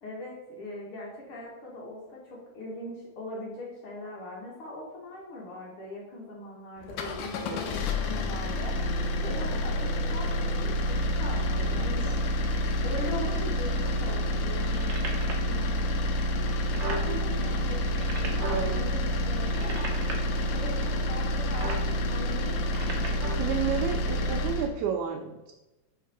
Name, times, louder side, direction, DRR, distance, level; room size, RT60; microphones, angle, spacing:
voice 1, 0.0-8.8 9.2-12.2 12.8-15.9 16.7-20.0 20.5-23.3, left 1 dB, 55° left, -3 dB, 1.7 m, -40 dB
sound 1, 6.8-24.7, equal, 90° left, 2.2 m, -28 dB
voice 2, 11.6-12.1 18.5-18.9 23.3-25.5, right 7 dB, 80° right, 2 dB, 1.9 m, -32 dB
sound 2, 14.6-15.5 16.1-16.2 16.4-17.1 17.7-18.6 19.4-20.1 21.4-21.8 22.6-23.4 24.2-24.3, right 2 dB, 65° right, 1.2 m, -36 dB
5.5 x 4.2 x 4.7 m, 1.0 s
omnidirectional pair, 3.5 m